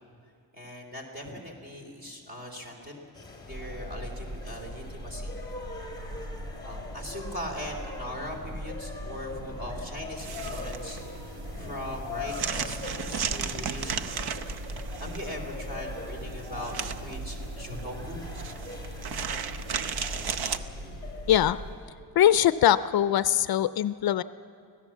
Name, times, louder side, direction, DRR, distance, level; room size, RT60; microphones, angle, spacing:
voice 1, 0.5-3.0 3.4-5.3 6.6-14.1 15.0-18.2, equal, 25° right, 3 dB, 3.3 m, -40 dB
sound 1, 3.1-21.9, left 3 dB, 10° left, 2.7 m, -43 dB
sound 2, 3.5-21.7, equal, 55° right, 2.3 m, -41 dB
sound 3, 10.2-20.6, right 6 dB, 70° right, 0.9 m, -35 dB
voice 2, 22.2-24.2, left 11 dB, 65° left, 14 dB, 0.5 m, -22 dB
25.5 x 17.0 x 7.3 m, 2.4 s
wide cardioid pair, 170°, 40 cm